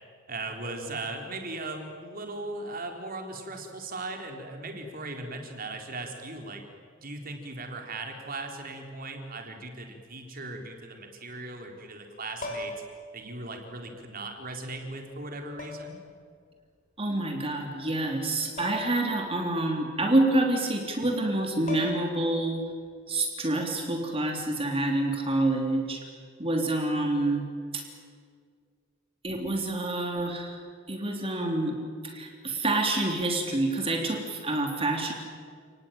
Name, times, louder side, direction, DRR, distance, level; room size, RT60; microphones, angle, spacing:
voice 1, 0.3-6.6 7.0-12.7 13.1-16.0, right 2 dB, 50° right, 3 dB, 4.2 m, -38 dB
sound 1, 12.4-13.0 14.3-14.4 15.6-16.0 18.6-19.0 19.3-19.4 21.3-21.4 21.7-22.3 24.2-24.4, left 2 dB, 40° left, 5.7 m, -38 dB
voice 2, 17.0-22.6 23.1-26.0 26.4-27.5 27.7-27.8 29.2-30.6 30.9-31.8 32.0-35.1, right 2 dB, 30° right, 2 dB, 3.1 m, -27 dB
30.0 x 20.0 x 9.2 m, 2.1 s
head